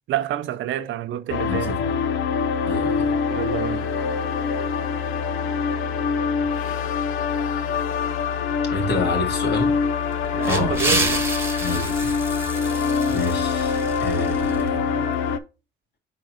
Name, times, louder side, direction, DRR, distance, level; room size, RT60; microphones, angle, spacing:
voice 1, 0.1-1.8 3.3-3.9 10.3-11.2, right 12 dB, 75° right, 0.6 m, -28 dB
sound 1, 1.3-15.4, left 6 dB, 85° left, 0.6 m, -24 dB
voice 2, 1.5-2.0 2.6-3.1 8.7-9.7 10.4-11.1 11.6-12.1 13.1-15.0, left 2 dB, 60° left, 2.0 m, -28 dB
sound 2, 10.1-14.6, right 2 dB, 10° right, 1.1 m, -29 dB
4.6 x 3.8 x 5.4 m
cardioid pair, 90°, 20 cm